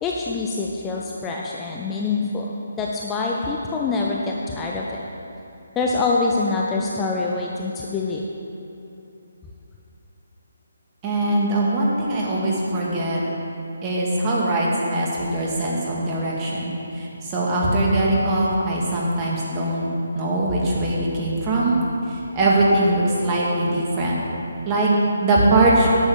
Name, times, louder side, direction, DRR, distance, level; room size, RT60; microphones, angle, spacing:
voice 1, 0.0-2.5 2.8-5.0 5.8-8.2, left 3 dB, 15° left, -2 dB, 0.7 m, -25 dB
voice 2, 11.0-13.2 13.8-19.9 20.1-21.8 22.1-24.2 24.7-24.9 25.2-25.9, right 2 dB, 25° right, -4 dB, 2.3 m, -21 dB
11.0 x 7.1 x 6.9 m, 2.9 s
figure-of-eight pair, 145°, 0 cm